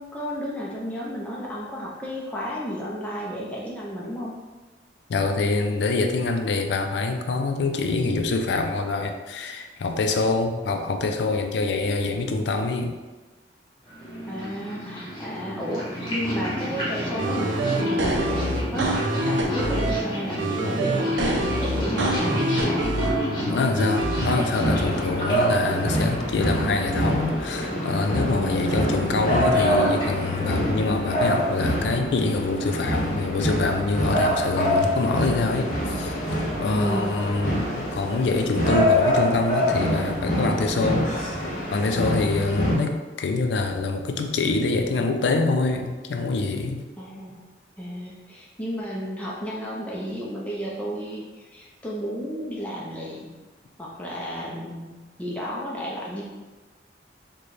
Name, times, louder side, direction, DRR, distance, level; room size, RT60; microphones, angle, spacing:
voice 1, 0.0-4.3 14.2-18.9 19.1-22.4 23.5-23.8 28.4-28.8 36.7-37.1 47.0-47.4 47.8-53.3 53.8-56.2, equal, 10° left, -5 dB, 0.4 m, -33 dB
voice 2, 5.1-12.9 23.5-36.1 36.6-37.6 37.9-46.8, left 3 dB, 70° left, 5 dB, 0.4 m, -25 dB
Purr, 13.9-31.5, equal, 25° left, 1.1 m, -31 dB
sound 1, 17.2-20.0 20.4-23.2 23.8-24.4, right 1 dB, 90° right, 0.5 m, -25 dB
sound 2, 24.5-42.7, equal, 45° left, 0.8 m, -25 dB
3.9 x 2.2 x 3.1 m, 1.2 s
head